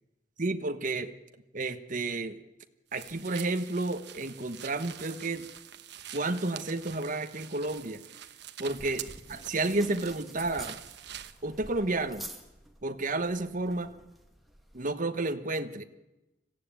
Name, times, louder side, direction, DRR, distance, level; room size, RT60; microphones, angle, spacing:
voice 1, 0.4-1.1 1.5-2.4 2.9-5.5 6.1-8.0 8.6-10.8 11.4-12.3 12.8-13.9 14.7-15.8, right 2 dB, 45° right, 7 dB, 1.2 m, -31 dB
sound 1, 2.9-11.4, right 11 dB, 60° right, 1.1 m, -46 dB
sound 2, 8.6-14.8, right 1 dB, ahead, 2.2 m, -49 dB
26.0 x 15.0 x 9.0 m, 0.98 s
head